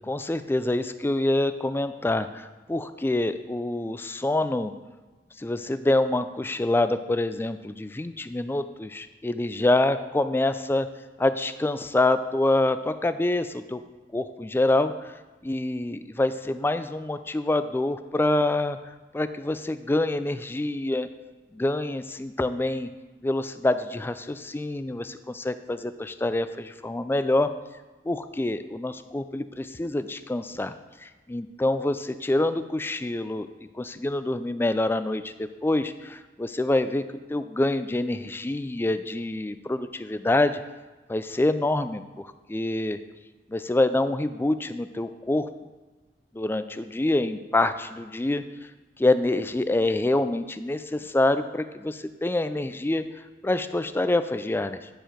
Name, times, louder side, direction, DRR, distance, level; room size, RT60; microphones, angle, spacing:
voice 1, 0.1-4.7 5.4-10.9 11.2-13.8 14.1-15.1 15.4-21.1 21.5-22.9 23.2-27.5 28.0-30.7 31.0-33.5 33.7-37.0 37.3-40.6 41.1-43.0 43.5-45.5 46.3-48.4 49.0-54.9, left 2 dB, 15° left, 11 dB, 0.3 m, -26 dB
10.0 x 4.6 x 5.1 m, 1.2 s
head